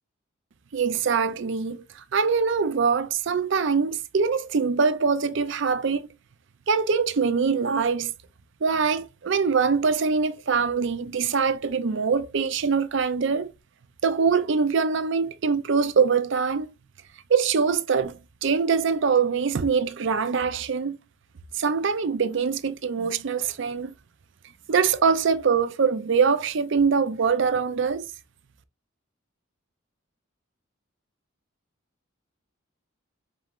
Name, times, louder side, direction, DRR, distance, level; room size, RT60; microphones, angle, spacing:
voice 1, 0.7-6.1 6.7-8.1 8.6-13.5 14.0-16.7 17.3-21.0 21.5-23.9 24.7-28.1, right 5 dB, 60° right, 0.5 m, -23 dB
5.3 x 3.1 x 2.4 m
head